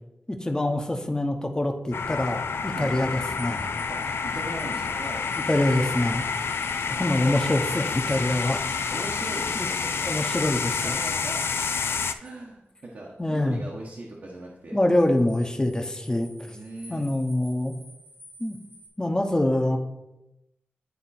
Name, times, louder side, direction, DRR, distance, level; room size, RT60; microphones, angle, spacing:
voice 1, 0.3-3.7 5.5-6.3 6.9-8.6 9.6-9.7 10.0-11.0 13.2-13.6 14.7-16.3 16.9-17.7 18.4-18.6 19.0-19.8, left 1 dB, 20° left, 4 dB, 0.9 m, -25 dB
sound 1, 1.9-12.1, left 5 dB, 80° left, 0.4 m, -29 dB
sound 2, 3.2-12.4 14.9-18.9, equal, 85° right, 2.2 m, -50 dB
voice 2, 3.9-5.2 8.4-8.5 8.9-10.1 10.6-11.4 11.9-14.8 16.5-17.1, right 2 dB, 60° right, -3 dB, 1.2 m, -39 dB
9.6 x 3.6 x 4.2 m, 0.92 s
cardioid pair, 55°, 4 cm